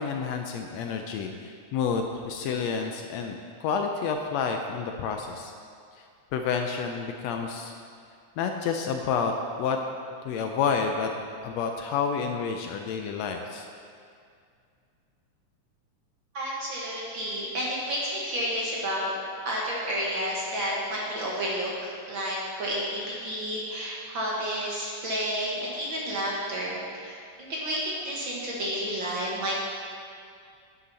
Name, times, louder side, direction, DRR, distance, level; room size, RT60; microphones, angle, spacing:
voice 1, 0.0-5.5 6.3-7.7 8.4-9.3 9.6-9.8 10.2-11.1 11.4-13.7, left 6 dB, 75° left, 4 dB, 1.7 m, -29 dB
voice 2, 16.3-19.1 19.4-29.6, equal, 55° right, -4 dB, 1.6 m, -31 dB
9.9 x 9.6 x 4.0 m, 2.3 s
omnidirectional pair, 3.4 m